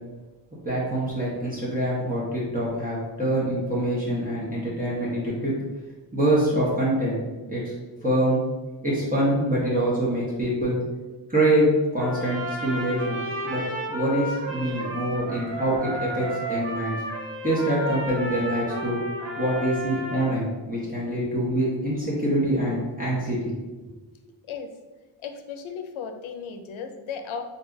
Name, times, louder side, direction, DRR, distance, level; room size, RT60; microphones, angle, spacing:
voice 1, 0.6-5.5 6.1-7.2 7.5-7.6 8.0-8.4 8.8-10.8 11.3-13.2 13.4-13.6 13.9-17.0 17.4-19.0 19.4-23.5, right 1 dB, 20° right, -7 dB, 1.0 m, -25 dB
Trumpet, 11.9-20.3, right 1 dB, 70° right, 1.2 m, -32 dB
voice 2, 25.2-27.4, left 6 dB, 80° left, 7 dB, 0.6 m, -35 dB
4.0 x 2.3 x 3.9 m, 1.2 s
wide cardioid pair, 135°, 47 cm